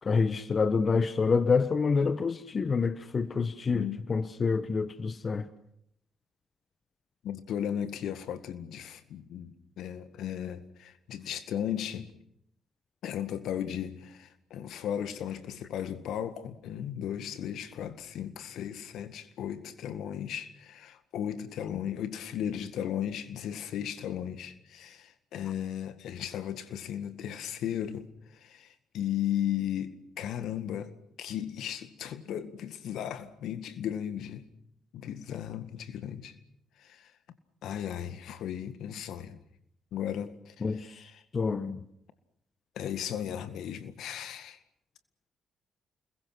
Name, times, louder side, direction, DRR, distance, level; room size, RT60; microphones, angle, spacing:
voice 1, 0.0-5.5 40.6-41.0 41.3-41.8, left 5 dB, 45° left, 1.3 m, -27 dB
voice 2, 7.2-12.1 13.0-34.5 34.9-36.3 36.8-37.1 37.6-39.4 39.9-41.2 42.8-44.6, left 10 dB, 70° left, 1.9 m, -36 dB
29.5 x 21.5 x 6.2 m
hypercardioid pair, 45°, 0 cm